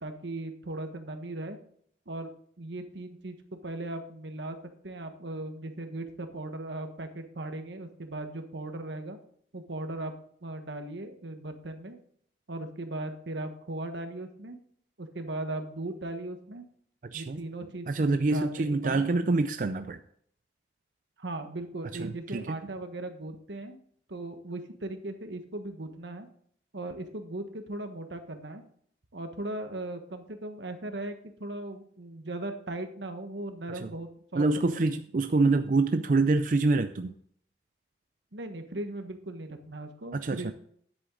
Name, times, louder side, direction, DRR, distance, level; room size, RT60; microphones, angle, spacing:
voice 1, 0.0-1.6 2.1-2.3 2.6-3.3 3.6-4.6 4.8-9.2 9.5-10.1 10.4-12.0 12.5-14.6 15.0-16.6 17.1-19.0 21.2-23.8 24.1-26.3 26.7-28.6 29.1-34.8 38.3-40.5, right 2 dB, 85° right, 7 dB, 1.3 m, -38 dB
voice 2, 17.0-17.4 17.9-20.0 22.0-22.7 33.8-33.9 34.3-37.1 40.1-40.5, right 3 dB, 45° right, 9 dB, 0.4 m, -26 dB
10.0 x 8.1 x 3.8 m, 0.63 s
head